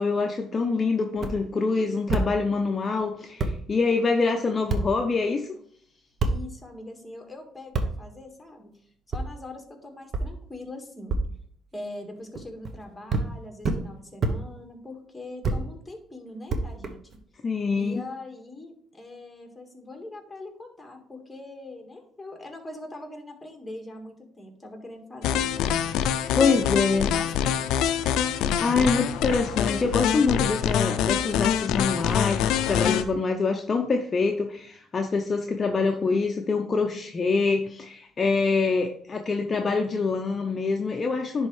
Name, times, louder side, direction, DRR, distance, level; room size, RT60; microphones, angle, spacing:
voice 1, 0.0-5.5 17.4-18.0 26.4-27.1 28.6-41.5, left 4 dB, 35° left, 4 dB, 0.6 m, -25 dB
sound 1, 1.1-1.3 2.1-2.3 3.0-3.1 3.4-3.5 4.7-4.8 6.2-6.3 7.7-7.9 9.1-9.2 10.1-10.2 11.1-11.2 12.3-12.7 13.1-13.3 13.6-13.8 14.2-14.3 15.4-15.6 16.5-17.2, right 3 dB, 50° right, 0.8 m, -25 dB
voice 2, 6.2-8.7 9.1-11.2 11.7-17.0 17.7-25.5 26.3-28.0, left 2 dB, 10° left, 3 dB, 1.6 m, -42 dB
sound 2, 25.2-33.0, left 9 dB, 85° left, 0.4 m, -25 dB
10.5 x 3.5 x 3.2 m, 0.63 s
cardioid pair, 90°, 0 cm